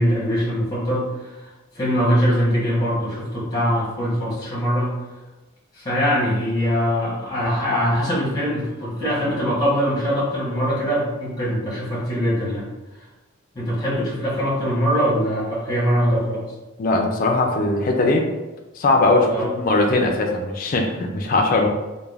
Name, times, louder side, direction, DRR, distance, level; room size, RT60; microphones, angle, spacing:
voice 1, 0.0-1.4 1.7-4.9 5.7-12.7 13.5-16.4 19.3-19.5, equal, 20° left, -7 dB, 0.9 m, -22 dB
voice 2, 16.8-18.2 18.8-21.7, left 2 dB, 40° left, 2 dB, 0.3 m, -20 dB
2.4 x 2.2 x 3.2 m, 1.1 s
head